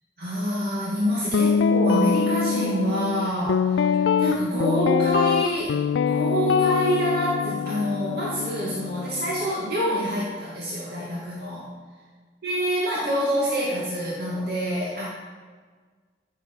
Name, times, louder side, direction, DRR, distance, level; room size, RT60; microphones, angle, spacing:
voice 1, 0.2-11.7 12.4-15.0, equal, 60° right, -7 dB, 2.4 m, -26 dB
Guitar, 1.3-9.5, left 6 dB, 75° left, 0.3 m, -24 dB
15.0 x 7.4 x 5.6 m, 1.5 s
head